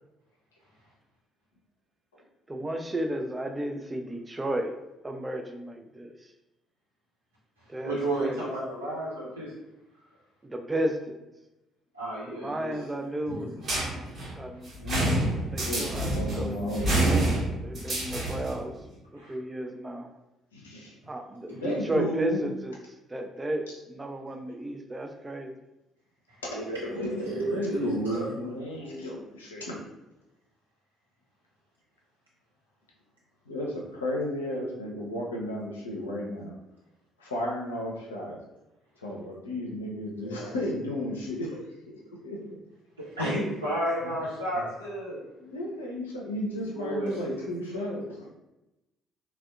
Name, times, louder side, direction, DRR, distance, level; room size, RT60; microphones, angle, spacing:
voice 1, 2.5-4.8 5.0-6.3 7.7-8.5 10.4-11.2 12.3-13.6 14.3-14.7 15.5-16.8 17.6-18.8 19.1-20.1 21.1-25.5, right 1 dB, 20° right, 5 dB, 0.3 m, -33 dB
voice 2, 7.8-9.5 11.9-12.9 13.3-13.4 19.2-19.3 26.5-28.3 43.0-45.2 46.5-47.4, right 1 dB, 85° right, -9 dB, 0.9 m, -32 dB
sound 1, 13.6-18.6, right 1 dB, 45° right, 1.0 m, -27 dB
voice 3, 14.7-15.1 15.6-17.2 20.5-21.0 21.5-22.4 26.4-26.6 26.9-29.7 33.5-36.5 37.2-38.4 39.0-42.0 42.2-42.4 44.0-44.2 44.5-44.6 45.4-48.3, equal, 80° left, -3 dB, 0.5 m, -33 dB
3.3 x 2.2 x 2.4 m, 0.96 s
figure-of-eight pair, 45°, 0 cm